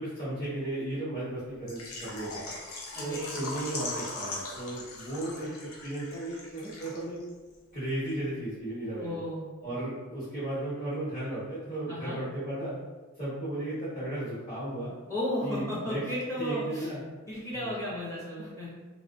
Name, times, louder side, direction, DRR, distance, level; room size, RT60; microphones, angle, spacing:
voice 1, 0.0-2.5 3.0-7.2 7.7-9.1 9.6-12.7 13.2-14.9 15.4-16.0 16.4-17.0 17.5-17.7, right 1 dB, 45° left, -13 dB, 0.9 m, -35 dB
Water / Liquid, 1.7-7.3 7.5-7.6 8.1-8.2, left 2 dB, 75° left, 0.5 m, -40 dB
voice 2, 3.0-3.4 9.0-9.4 11.9-12.2 15.1-16.9 17.3-18.7, equal, 15° left, -7 dB, 0.6 m, -34 dB
2.5 x 2.1 x 2.5 m, 1.3 s
head